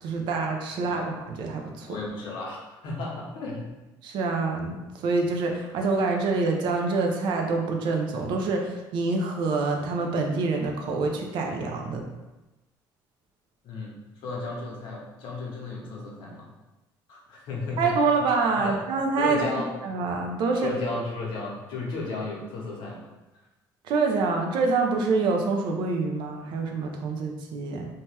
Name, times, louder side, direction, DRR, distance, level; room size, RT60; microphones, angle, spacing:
voice 1, 0.0-2.0 4.0-12.0 17.8-19.5 19.8-20.7 23.8-27.9, right 3 dB, 70° right, 2 dB, 0.5 m, -26 dB
voice 2, 1.9-3.7 13.6-14.0 14.2-16.5 17.1-18.0 18.6-18.7 19.2-19.7 20.6-23.1, left 3 dB, 75° left, -2 dB, 0.8 m, -34 dB
2.7 x 2.2 x 3.3 m, 1.1 s
cardioid pair, 140°, 8 cm